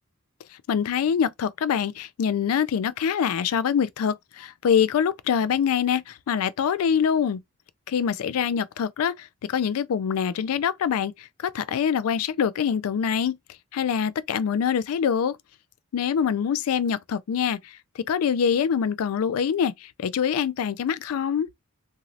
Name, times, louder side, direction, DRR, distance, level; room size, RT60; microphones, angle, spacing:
voice 1, 0.5-7.4 7.9-13.4 13.7-15.4 15.9-21.5, left 7 dB, 80° left, 0.3 m, -25 dB
2.9 x 2.7 x 2.4 m
head